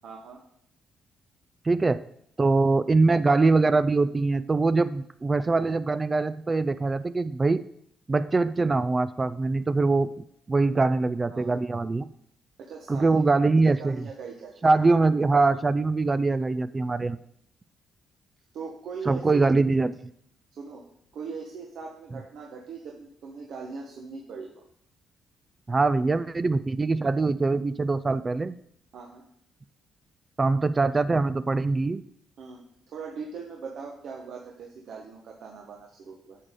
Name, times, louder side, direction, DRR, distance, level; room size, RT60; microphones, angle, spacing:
voice 1, 0.0-0.4 2.7-2.8 11.3-11.5 12.6-13.2 13.7-14.5 18.5-19.4 20.6-20.8 21.1-24.5 28.9-29.2 32.4-36.4, right 5 dB, 70° right, 0 dB, 1.3 m, -40 dB
voice 2, 1.6-2.0 2.4-7.6 8.1-12.1 12.9-14.0 14.6-17.2 19.1-19.9 25.7-28.5 30.4-32.0, right 3 dB, 25° right, 14 dB, 0.3 m, -23 dB
9.7 x 6.6 x 3.8 m, 0.69 s
cardioid pair, 90°, 0 cm